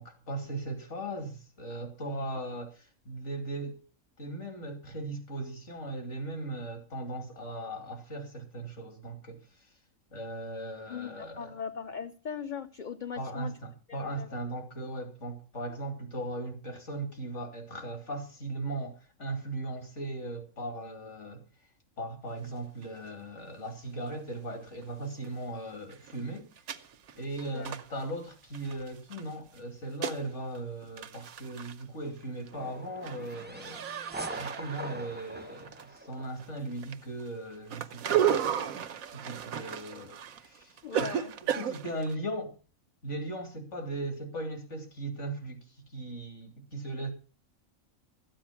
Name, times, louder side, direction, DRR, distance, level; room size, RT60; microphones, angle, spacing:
voice 1, 0.0-3.8 4.2-9.4 10.1-11.5 13.2-21.4 22.0-26.5 27.2-33.8 34.4-38.8 39.1-41.1 41.5-42.5 43.0-45.6 45.9-47.1, right 1 dB, 60° left, 3.0 m, -38 dB
voice 2, 10.9-13.5 13.9-14.3 27.5-27.7 40.8-41.3, left 6 dB, 40° left, 0.8 m, -39 dB
sound 1, 22.8-22.9 23.4-23.5 24.8-24.9 25.2-25.3 25.7-29.2 29.6-30.3 30.5-30.6 30.8-31.8 32.2-32.5 32.8-36.1 36.4-42.2, right 9 dB, 90° right, 1.3 m, -34 dB
sound 2, 32.5-36.6, right 2 dB, 10° right, 0.6 m, -42 dB
13.5 x 8.9 x 5.8 m
omnidirectional pair, 1.4 m